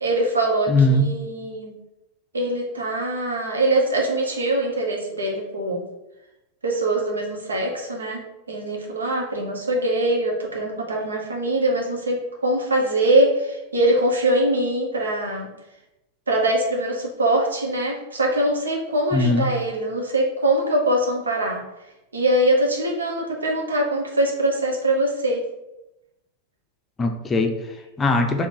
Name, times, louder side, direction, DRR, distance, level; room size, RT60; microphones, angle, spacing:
voice 1, 0.0-1.8 2.3-5.8 6.6-15.5 16.3-21.6 22.1-25.4, right 1 dB, 75° right, 1 dB, 0.9 m, -23 dB
voice 2, 0.7-1.1 19.1-19.5 27.0-28.5, left 2 dB, 20° left, 4 dB, 0.5 m, -20 dB
4.0 x 2.9 x 4.4 m, 0.95 s
figure-of-eight pair, 90°, 0 cm